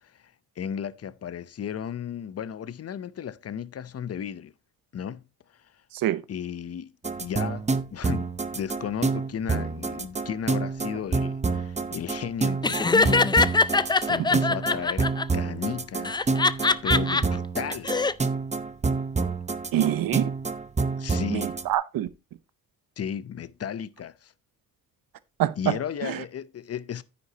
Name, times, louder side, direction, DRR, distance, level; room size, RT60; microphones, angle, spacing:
voice 1, 0.0-4.5 4.9-5.2 6.3-6.9 7.2-16.3 16.8-17.9 21.0-21.5 23.0-24.3 25.6-27.0, left 8 dB, 45° left, 0.7 m, -34 dB
voice 2, 5.9-6.2 14.2-14.3 19.7-20.3 21.3-22.1 25.4-25.7 26.0-26.2, right 12 dB, 80° right, 0.8 m, -25 dB
Old plastic synth Arpeggion. Bontemp Master, 7.0-21.6, right 4 dB, 20° right, 0.7 m, -28 dB
Laughter, 12.6-15.2 16.0-17.2 17.7-18.1, left 3 dB, 15° left, 0.4 m, -22 dB
9.6 x 9.6 x 2.8 m
cardioid pair, 100°, 34 cm